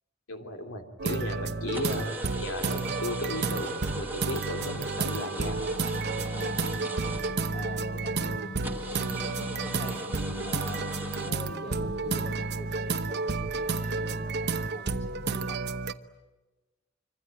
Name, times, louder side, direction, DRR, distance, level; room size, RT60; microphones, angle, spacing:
voice 1, 0.3-5.6, left 1 dB, 80° left, 4 dB, 3.1 m, -35 dB
sound 1, 1.0-15.9, right 4 dB, 55° right, 1.0 m, -31 dB
sound 2, 1.7-7.8 8.2-8.3 8.6-11.3, right 1 dB, 10° right, 1.8 m, -39 dB
Singing, 4.5-15.7, left 1 dB, 55° left, 0.8 m, -45 dB
voice 2, 6.2-6.6 7.2-10.0 10.4-15.6, left 2 dB, 35° left, 2 dB, 3.3 m, -46 dB
25.5 x 25.5 x 9.1 m, 1.2 s
head